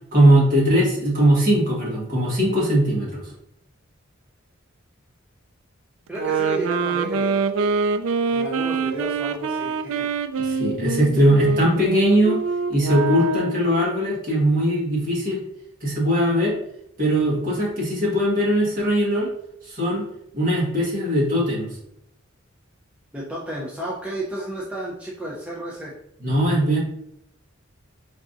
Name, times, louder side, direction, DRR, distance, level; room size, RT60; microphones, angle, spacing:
voice 1, 0.1-3.2 10.4-12.4 12.7-15.4 15.8-16.5 17.0-19.3 19.6-20.1 20.3-21.7 26.2-26.8, right 1 dB, 45° right, -5 dB, 1.5 m, -20 dB
voice 2, 6.1-7.4 8.3-10.1 23.1-25.9, equal, 5° right, -5 dB, 0.5 m, -32 dB
sound 1, 6.1-13.7, right 4 dB, 85° right, 0.3 m, -25 dB
3.9 x 3.5 x 2.5 m, 0.74 s
head